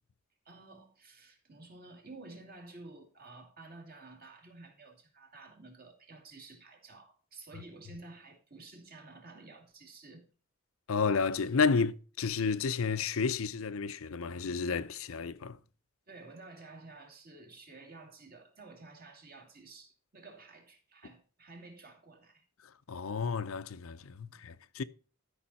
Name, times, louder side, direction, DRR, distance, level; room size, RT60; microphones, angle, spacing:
voice 1, 0.4-10.3 11.8-11.9 16.1-22.4 24.2-24.4, right 3 dB, 45° right, 2.5 m, -52 dB
voice 2, 10.9-15.6 22.9-24.8, left 5 dB, 80° left, 0.6 m, -31 dB
13.0 x 5.5 x 4.1 m
head